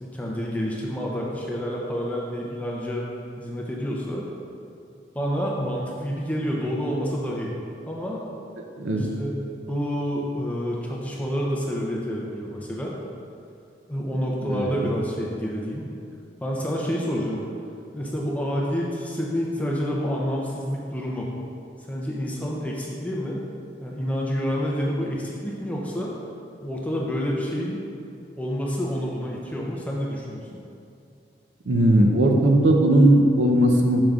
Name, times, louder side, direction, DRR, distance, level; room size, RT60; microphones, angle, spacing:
voice 1, 0.0-3.1 3.4-4.3 5.1-7.5 7.9-8.3 9.0-9.4 9.7-12.9 13.9-15.9 16.4-17.4 17.9-21.3 21.8-23.4 23.8-26.1 26.6-27.8 28.4-30.4, equal, 10° left, -3 dB, 0.5 m, -28 dB
voice 2, 31.7-34.0, right 1 dB, 90° right, 2 dB, 0.6 m, -18 dB
7.2 x 6.6 x 2.4 m, 2.5 s
head